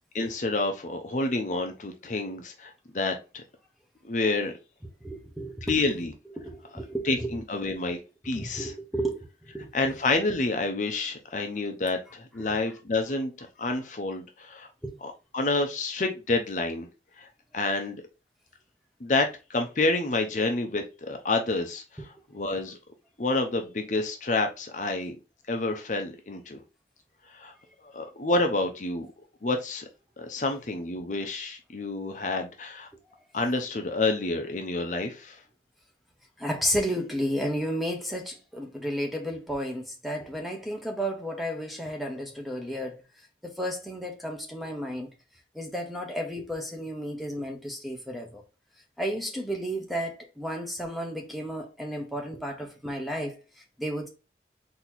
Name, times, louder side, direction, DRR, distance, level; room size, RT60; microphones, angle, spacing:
voice 1, 0.1-3.4 4.0-4.5 5.6-6.1 7.0-8.0 8.2-8.7 9.7-14.7 15.0-16.9 17.2-17.3 17.5-18.0 19.0-22.8 23.2-25.2 25.5-26.6 27.3-27.5 27.8-29.1 29.4-29.8 30.2-32.9 33.3-35.4, left 2 dB, 45° left, 0.7 m, -28 dB
voice 2, 5.0-5.8 6.4-7.4 8.4-9.7 12.4-12.5 14.8-15.0 36.4-43.0 43.4-45.1 45.5-48.4 49.0-53.4 53.8-54.1, equal, ahead, 0.9 m, -32 dB
4.1 x 2.9 x 4.3 m
head